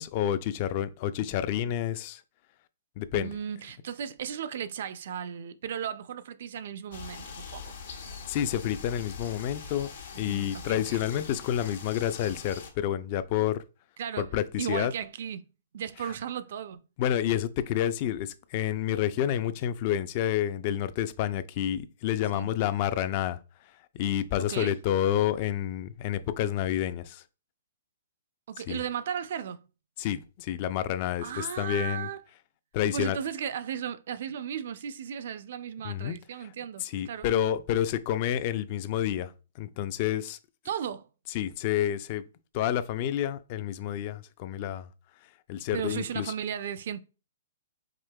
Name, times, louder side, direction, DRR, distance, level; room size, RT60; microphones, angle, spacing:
voice 1, 0.0-2.2 3.0-3.3 8.3-9.9 10.2-13.6 14.2-14.9 17.0-23.4 23.9-27.2 28.7-28.8 30.0-32.1 32.7-33.2 35.8-36.2 36.8-40.4 41.3-42.2 42.5-44.9 45.5-46.3, left 10 dB, 40° left, 0.3 m, -29 dB
voice 2, 3.1-7.7 10.1-11.0 14.0-14.3 14.6-16.8 22.3-22.5 24.5-24.7 28.5-29.7 31.2-32.2 32.9-37.3 40.6-41.1 45.7-47.0, right 8 dB, 60° right, 0.4 m, -35 dB
sound 1, 6.9-12.7, left 6 dB, 75° left, 1.0 m, -43 dB
4.9 x 2.7 x 2.2 m
hypercardioid pair, 135°, 0 cm